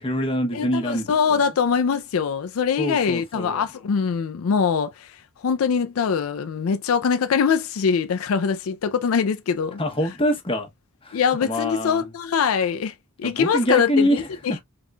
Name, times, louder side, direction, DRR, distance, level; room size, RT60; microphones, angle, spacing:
voice 1, 0.0-1.1 2.8-3.6 9.8-10.7 11.0-12.0 13.2-14.3, equal, 25° left, 1.0 m, -24 dB
voice 2, 0.5-9.8 11.1-14.6, left 6 dB, 90° left, 0.4 m, -23 dB
3.8 x 3.6 x 2.2 m
head